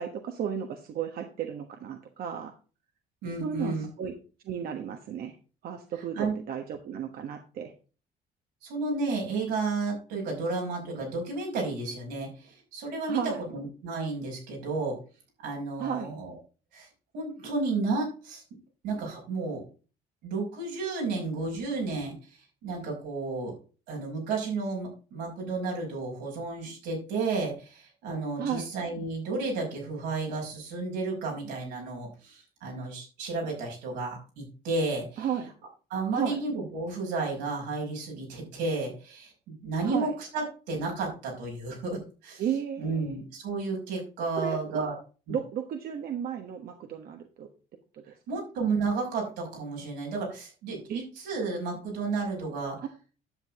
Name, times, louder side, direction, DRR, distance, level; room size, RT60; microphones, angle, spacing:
voice 1, 0.0-2.5 3.4-4.1 4.4-5.4 5.6-7.7 13.1-13.4 15.8-16.1 28.4-28.7 35.2-35.5 36.1-36.4 39.8-40.1 42.4-43.2 44.4-44.9 45.3-47.5 47.9-48.2 50.9-51.0 52.8-52.9, right 8 dB, 60° right, 5 dB, 1.3 m, -33 dB
voice 2, 3.2-3.9 6.1-6.4 8.6-13.2 13.5-15.0 15.4-16.4 16.7-16.9 17.1-18.4 18.8-19.6 20.2-23.6 23.9-35.3 35.9-42.4 42.8-45.0 45.3-45.4 48.3-52.8, right 3 dB, 90° right, -1 dB, 5.6 m, -32 dB
10.5 x 7.6 x 3.6 m, 0.36 s
cardioid pair, 110°, 17 cm